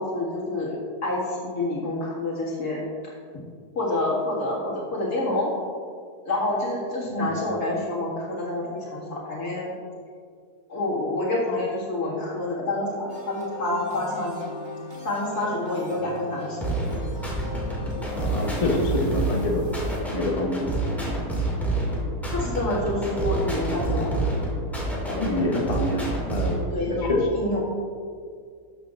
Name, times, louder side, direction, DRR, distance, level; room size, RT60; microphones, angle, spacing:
voice 1, 0.0-3.1 3.8-5.5 6.3-9.8 10.7-14.4 15.0-16.8 22.3-24.5 26.7-27.6, left 2 dB, 70° left, -5 dB, 2.5 m, -28 dB
sound 1, 13.1-20.0, left 1 dB, 45° right, 2.3 m, -39 dB
sound 2, 16.6-26.6, right 1 dB, ahead, 2.0 m, -28 dB
voice 2, 18.2-19.8 20.1-20.8 25.1-26.6 26.9-27.3, left 2 dB, 30° left, 0 dB, 0.8 m, -26 dB
12.5 x 7.4 x 2.5 m, 2.2 s
omnidirectional pair, 1.7 m